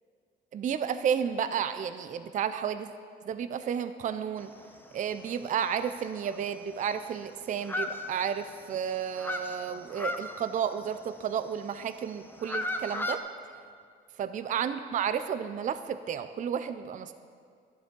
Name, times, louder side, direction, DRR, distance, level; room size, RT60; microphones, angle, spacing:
voice 1, 0.5-2.9 3.2-4.5 4.9-13.2 14.2-17.1, right 8 dB, 40° right, 11 dB, 0.4 m, -32 dB
sound 1, 4.4-5.1 5.4-5.5 5.9-6.0 6.2-7.2 7.6-8.7 8.9-11.5 12.1-13.2, left 2 dB, 10° left, 0.6 m, -36 dB
11.5 x 7.1 x 3.8 m, 2.2 s
cardioid pair, 90°, 20 cm